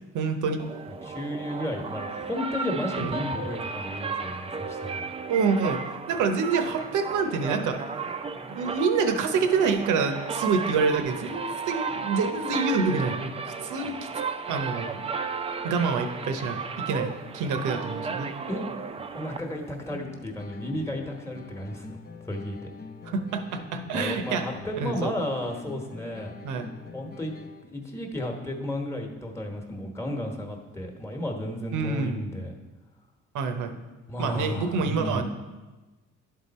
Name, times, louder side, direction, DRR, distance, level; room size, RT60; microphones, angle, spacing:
voice 1, 0.1-0.6 3.0-3.3 5.3-5.8 6.1-8.1 8.5-14.1 14.5-15.0 15.6-18.3 23.0-24.5 24.7-25.1 26.4-26.7 31.7-32.2 33.3-33.8 34.2-35.2, right 5 dB, 80° right, 7 dB, 0.8 m, -27 dB
sound 1, 0.6-20.0, right 5 dB, 20° right, 0.4 m, -34 dB
voice 2, 0.9-5.1 18.5-18.6 19.1-22.0 22.2-22.7 23.9-26.3 26.9-27.3 27.6-32.5 34.1-35.2, left 1 dB, 10° left, 2 dB, 1.2 m, -33 dB
sound 2, 19.9-27.9, left 5 dB, 30° left, 0.6 m, -45 dB
11.5 x 3.8 x 4.1 m, 1.2 s
cardioid pair, 90°, 30 cm